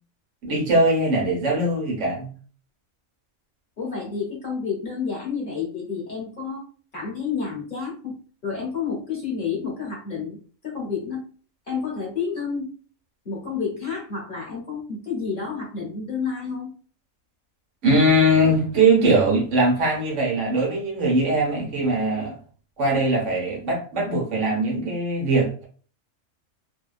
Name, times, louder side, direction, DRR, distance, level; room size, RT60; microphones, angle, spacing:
voice 1, 0.4-2.3 17.8-22.4 22.8-25.6, right 1 dB, 65° right, 1.1 m, -21 dB
voice 2, 3.8-6.7 6.9-8.2 8.4-11.3 11.7-12.7 13.2-16.7, left 5 dB, 45° left, 0.9 m, -30 dB
2.7 x 2.2 x 2.3 m
omnidirectional pair, 1.4 m